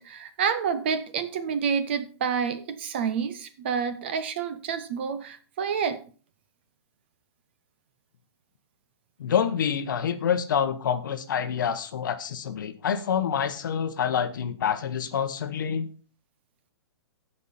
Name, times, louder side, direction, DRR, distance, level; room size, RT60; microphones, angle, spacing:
voice 1, 0.0-6.0, right 6 dB, 25° right, 0.5 m, -28 dB
voice 2, 9.2-15.9, left 8 dB, 50° left, 0.9 m, -27 dB
15.0 x 5.5 x 4.1 m
hypercardioid pair, 180°, 14 cm